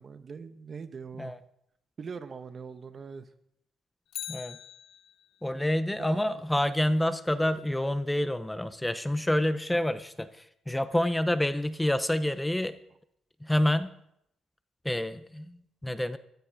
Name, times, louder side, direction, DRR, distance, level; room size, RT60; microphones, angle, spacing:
voice 1, 0.0-1.3 2.0-3.3 6.0-6.4, right 5 dB, 45° right, 10 dB, 1.2 m, -42 dB
Bicycle, 4.1-5.5 13.8-13.9, left 12 dB, 85° left, 0.5 m, -42 dB
voice 2, 4.3-4.6 5.4-12.8 13.4-13.9 14.8-16.2, left 1 dB, 10° left, 12 dB, 0.8 m, -28 dB
16.5 x 13.0 x 4.8 m, 0.74 s
cardioid pair, 90°, 0 cm